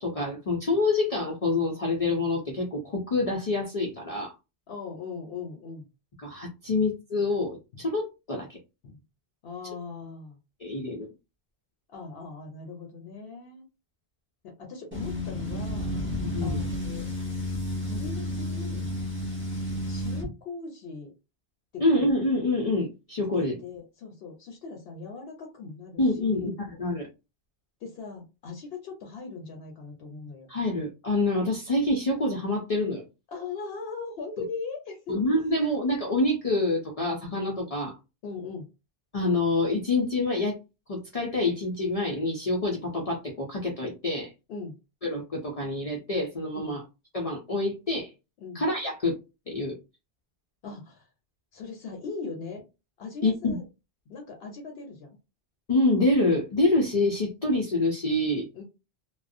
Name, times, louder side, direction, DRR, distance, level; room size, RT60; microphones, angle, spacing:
voice 1, 0.0-4.3 6.2-8.6 10.6-11.1 16.2-16.6 21.8-23.6 26.0-26.5 26.8-27.1 30.5-33.1 35.1-38.0 39.1-40.6 40.9-44.3 45.0-46.8 47.1-48.1 48.5-49.1 49.5-49.8 53.2-53.6 55.7-58.5, left 2 dB, 45° left, -1 dB, 0.5 m, -26 dB
voice 2, 4.7-5.9 6.7-6.8 7.7-7.8 8.8-9.0 9.4-10.4 11.9-13.6 14.4-15.9 16.4-17.1 17.8-18.9 19.9-21.1 21.7-22.1 23.3-26.6 27.8-30.5 33.3-35.2 38.2-38.7 44.5-44.8 46.6-46.8 48.4-48.6 50.6-51.1 51.5-52.6 53.0-53.6 54.1-55.2 58.5-58.6, left 4 dB, 70° left, 3 dB, 0.8 m, -39 dB
sound 1, 14.9-20.3, left 1 dB, 15° right, 0.7 m, -31 dB
2.4 x 2.1 x 2.5 m, 0.28 s
omnidirectional pair, 1.1 m